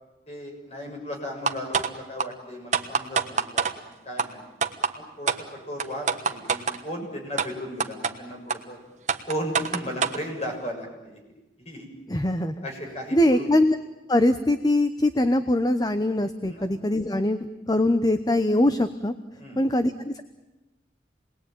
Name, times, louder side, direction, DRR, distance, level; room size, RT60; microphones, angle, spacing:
voice 1, 0.3-3.7 4.0-4.5 4.9-5.3 5.7-8.8 9.3-11.2 11.6-11.9 12.6-13.6 16.5-16.7 19.4-19.6, equal, 35° left, 1 dB, 6.9 m, -35 dB
sound 1, 1.5-1.9 2.2-2.3 2.7-3.7 4.2-4.3 4.6-4.9 5.3-5.4 5.8-6.8 7.4-7.5 7.8-8.1 8.5-8.6 9.1-10.2, right 5 dB, 40° right, 1.4 m, -24 dB
voice 2, 12.1-12.6 13.1-13.8 14.1-19.1 19.6-20.2, left 1 dB, 20° left, 10 dB, 0.9 m, -22 dB
28.0 x 20.5 x 9.1 m, 1.1 s
head